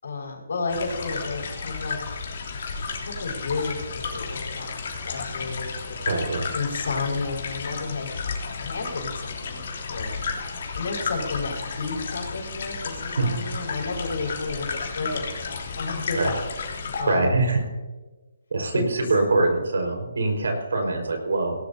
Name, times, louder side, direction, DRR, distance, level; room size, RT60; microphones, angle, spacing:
voice 1, 0.0-2.0 3.0-6.0 6.5-8.2 8.6-9.6 9.9-10.4 10.7-16.3 16.9-17.5 18.7-19.1, left 3 dB, 70° left, -1 dB, 5.2 m, -32 dB
sound 1, 0.7-17.0, left 5 dB, 55° left, 3.1 m, -33 dB
voice 2, 6.0-6.5 13.2-13.3 16.1-16.3 17.1-17.6 18.5-21.5, right 2 dB, 80° right, 3 dB, 4.9 m, -23 dB
19.0 x 18.0 x 2.8 m, 1.2 s
hypercardioid pair, 160°, 0 cm